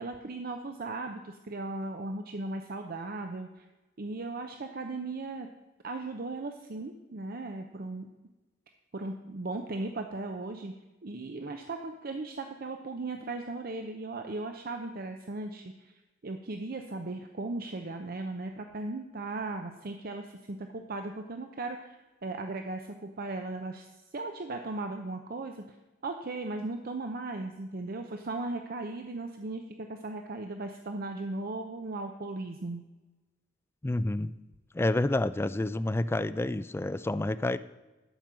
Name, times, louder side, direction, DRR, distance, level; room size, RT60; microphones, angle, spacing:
voice 1, 0.0-3.6 4.0-5.5 5.8-8.1 8.9-10.7 11.0-15.9 16.2-25.8 26.0-32.8, right 2 dB, 50° right, 5 dB, 0.7 m, -37 dB
voice 2, 33.8-34.3 34.7-37.6, left 2 dB, 15° left, 14 dB, 0.3 m, -29 dB
12.0 x 5.4 x 7.5 m, 1.1 s
head